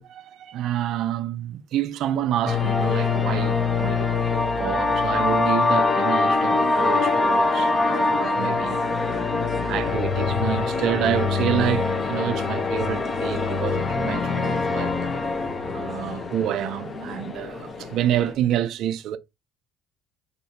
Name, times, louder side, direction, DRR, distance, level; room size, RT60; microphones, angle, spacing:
voice 1, 0.0-4.1 4.6-8.8 9.4-14.9 15.6-19.2, right 11 dB, 65° right, 0.4 m, -28 dB
sound 1, 2.5-18.3, left 3 dB, 35° left, 0.9 m, -24 dB
2.8 x 2.7 x 4.3 m
supercardioid pair, 90°, 0 cm